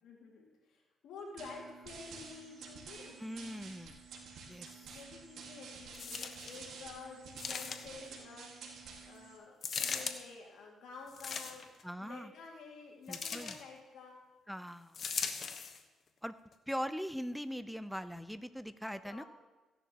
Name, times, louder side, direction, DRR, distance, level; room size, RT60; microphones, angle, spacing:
voice 1, 0.0-3.2 4.8-8.8 9.0-11.7 12.0-14.2 19.0-19.2, left 4 dB, 80° left, -1 dB, 2.2 m, -51 dB
sound 1, 1.4-9.4, right 5 dB, 75° right, 1.9 m, -50 dB
voice 2, 3.2-4.0 4.5-4.7 11.8-12.3 13.1-13.6 14.5-15.0 16.2-16.3 16.7-19.2, equal, ahead, 12 dB, 0.6 m, -41 dB
sound 2, 5.9-6.6 7.4-8.1 9.6-10.2 11.1-11.8 13.1-13.6 14.9-15.8 16.5-16.6, left 5 dB, 50° left, 1.0 m, -39 dB
15.5 x 11.0 x 3.0 m, 1.2 s
cardioid pair, 90°, 0 cm